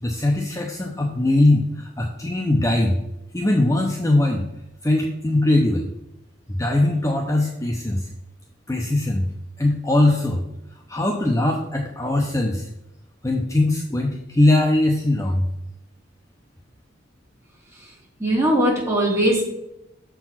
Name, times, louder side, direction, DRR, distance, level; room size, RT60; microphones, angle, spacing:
voice 1, 0.0-3.0 3.3-4.4 4.8-5.9 6.5-8.1 8.7-9.3 9.6-10.4 10.9-12.7 13.2-15.5, left 1 dB, 15° left, 1 dB, 0.7 m, -21 dB
voice 2, 18.2-19.4, right 1 dB, 15° right, -4 dB, 2.5 m, -20 dB
6.9 x 4.6 x 5.8 m, 0.86 s
head